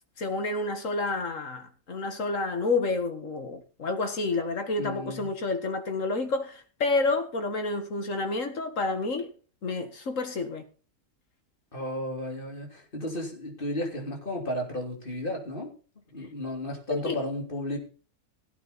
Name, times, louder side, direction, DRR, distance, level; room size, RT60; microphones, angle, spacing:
voice 1, 0.2-9.3 9.6-10.6 16.9-17.2, left 3 dB, 60° left, 2.0 m, -29 dB
voice 2, 4.8-5.3 11.7-15.7 16.1-17.8, left 1 dB, 35° left, 3.4 m, -33 dB
17.0 x 8.7 x 4.2 m
omnidirectional pair, 1.6 m